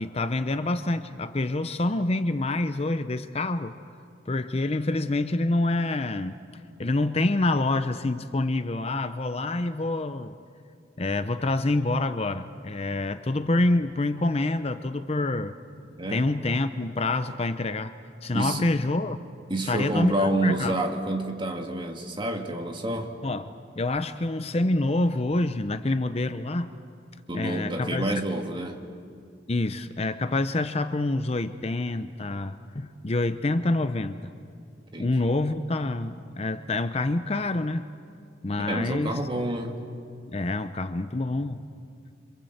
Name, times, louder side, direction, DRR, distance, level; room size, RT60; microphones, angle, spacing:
voice 1, 0.0-3.7 4.3-6.4 6.8-10.3 11.0-15.5 16.1-17.9 18.2-19.2 19.7-20.8 23.2-26.7 27.3-28.1 29.5-34.3 35.0-37.9 38.4-39.2 40.3-41.6, left 2 dB, 35° left, 10 dB, 0.7 m, -27 dB
voice 2, 16.0-16.3 18.3-18.7 19.5-23.1 27.3-28.8 34.9-35.3 38.6-39.8, right 1 dB, 25° right, 3 dB, 2.0 m, -29 dB
26.5 x 26.5 x 8.0 m, 2.3 s
head